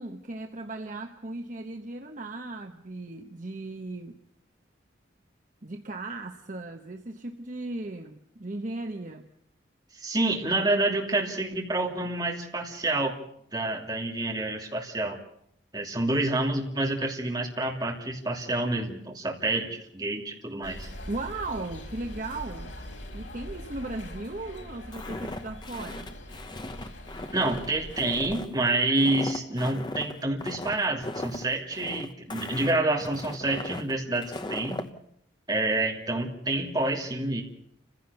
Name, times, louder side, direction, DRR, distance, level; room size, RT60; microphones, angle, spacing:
voice 1, 0.0-4.2 5.6-9.3 21.1-22.7 23.1-26.1, right 2 dB, 45° right, 5 dB, 1.0 m, -37 dB
voice 2, 9.9-13.2 13.5-15.2 15.7-20.9 27.3-34.8 35.5-37.4, right 2 dB, 20° right, 1 dB, 2.9 m, -28 dB
sound 1, 20.6-28.4, left 1 dB, 80° left, 4.5 m, -42 dB
Walk footsteps, 24.9-34.9, left 1 dB, 25° left, 1.1 m, -38 dB
29.5 x 16.0 x 7.0 m, 0.69 s
head